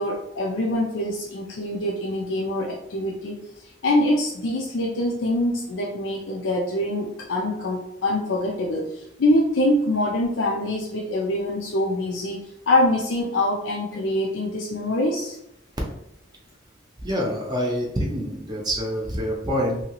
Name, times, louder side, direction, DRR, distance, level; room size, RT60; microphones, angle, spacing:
voice 1, 0.0-3.3 3.8-12.4 12.7-15.3, left 1 dB, 90° left, -2 dB, 0.5 m, -24 dB
voice 2, 17.0-19.8, equal, 20° right, -2 dB, 0.5 m, -26 dB
2.8 x 2.7 x 2.9 m, 0.77 s
head